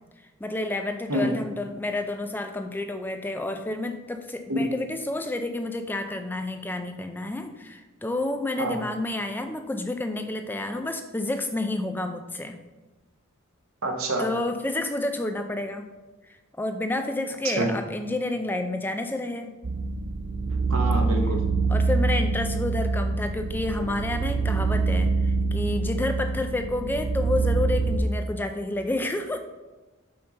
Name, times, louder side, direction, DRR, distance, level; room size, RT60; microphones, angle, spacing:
voice 1, 0.4-12.6 14.2-15.9 16.3-19.5 21.7-29.4, left 2 dB, 10° left, 7 dB, 0.3 m, -30 dB
voice 2, 13.8-14.3 17.4-17.7 20.7-21.4, right 1 dB, 85° right, 2 dB, 1.1 m, -26 dB
sound 1, 19.6-28.0, right 3 dB, 65° right, 0.6 m, -25 dB
5.7 x 5.4 x 3.8 m, 1.2 s
head